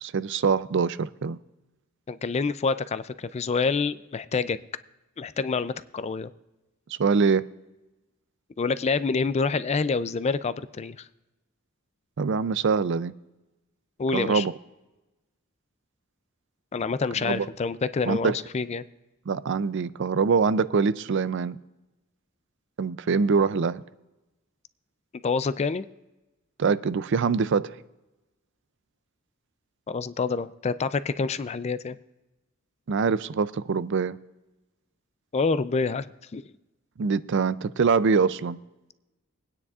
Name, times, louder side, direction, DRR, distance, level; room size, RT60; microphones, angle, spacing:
voice 1, 0.0-1.4 7.0-7.5 12.2-13.1 14.1-14.5 17.2-17.5 18.1-18.4 19.3-21.6 22.8-23.8 26.6-27.8 32.9-34.2 37.0-38.6, right 5 dB, 60° right, 0.4 m, -24 dB
voice 2, 2.1-4.6 5.2-6.3 8.6-11.1 14.0-14.5 16.7-18.9 25.2-25.9 29.9-32.0 35.3-36.4, left 4 dB, 30° left, 0.4 m, -27 dB
23.0 x 9.6 x 2.4 m
head